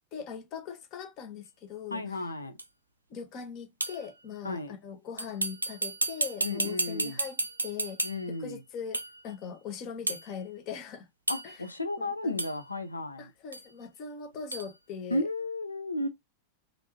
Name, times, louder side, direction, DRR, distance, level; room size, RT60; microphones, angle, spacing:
voice 1, 0.1-2.2 3.1-11.1 11.4-11.6 12.0-12.4 13.2-15.2, left 7 dB, 40° left, 1.0 m, -41 dB
voice 2, 1.9-2.6 4.4-4.7 6.4-7.2 8.0-8.6 11.3-13.3 15.1-16.1, left 2 dB, 80° left, 0.5 m, -33 dB
sound 1, 2.6-2.7 3.8-4.1 5.2-8.4 8.9-9.2 10.1-10.3 11.3-11.7 12.4-12.6 13.5-13.7 14.5-14.7, right 2 dB, 80° right, 0.4 m, -33 dB
3.3 x 2.5 x 3.0 m
figure-of-eight pair, 90°, 0 cm